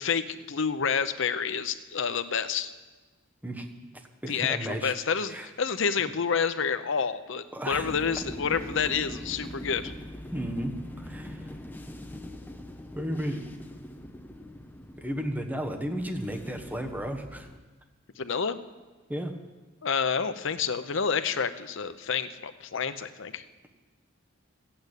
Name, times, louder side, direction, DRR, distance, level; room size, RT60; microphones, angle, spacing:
voice 1, 0.0-2.7 4.3-9.9 18.2-18.6 19.8-23.4, left 6 dB, 65° left, 12 dB, 0.7 m, -29 dB
voice 2, 4.2-4.9 5.3-5.5 7.5-7.9 10.3-11.4 12.9-13.5 15.0-17.5 19.1-19.3, equal, 10° right, 3 dB, 1.2 m, -33 dB
sound 1, 7.7-17.6, left 1 dB, 10° left, 0.8 m, -42 dB
14.5 x 8.8 x 8.2 m, 1.3 s
head